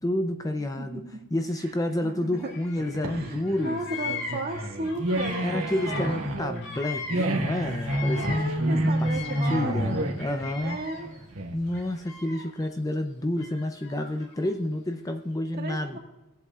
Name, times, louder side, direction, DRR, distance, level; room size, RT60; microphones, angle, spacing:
voice 1, 0.0-1.0 1.3-3.8 5.4-8.5 9.0-9.1 9.4-10.8 11.5-16.0, left 1 dB, 15° left, 6 dB, 0.5 m, -29 dB
voice 2, 2.0-2.5 3.0-6.7 8.2-10.2 10.6-11.1 15.5-16.0, right 2 dB, 45° right, -1 dB, 2.0 m, -35 dB
Bird vocalization bird call bird song, 2.4-3.2 3.4-8.5 8.8-11.2 11.7-12.6 13.4-14.5, left 5 dB, 50° left, 2.4 m, -40 dB
sound 1, 2.8-11.8, right 1 dB, 65° right, 1.5 m, -29 dB
18.5 x 8.0 x 2.4 m, 1.0 s
head